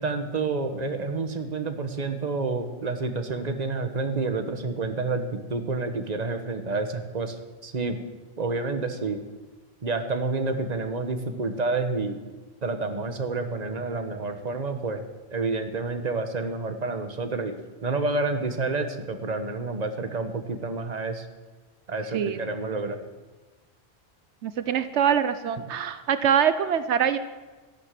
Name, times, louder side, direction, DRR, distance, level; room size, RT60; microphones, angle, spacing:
voice 1, 0.0-8.0 8.4-9.2 9.8-12.2 12.6-15.0 15.3-17.6 17.8-21.3 21.9-23.0 25.6-25.7, right 3 dB, 40° right, 7 dB, 1.3 m, -29 dB
voice 2, 24.4-27.2, right 8 dB, 85° right, 12 dB, 1.0 m, -24 dB
13.5 x 12.0 x 7.6 m, 1.2 s
omnidirectional pair, 1.1 m